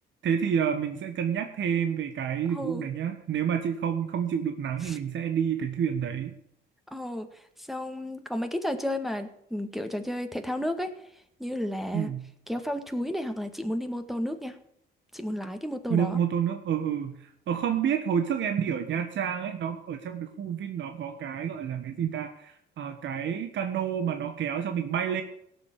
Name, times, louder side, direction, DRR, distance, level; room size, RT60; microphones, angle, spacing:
voice 1, 0.2-6.3 11.9-12.2 15.9-25.2, right 8 dB, 70° right, 6 dB, 1.5 m, -29 dB
voice 2, 2.5-2.9 4.8-5.0 6.9-10.9 11.4-12.1 12.5-14.6 15.1-16.2, left 1 dB, ahead, 6 dB, 1.8 m, -32 dB
17.0 x 7.0 x 8.5 m, 0.73 s
cardioid pair, 90°, 20 cm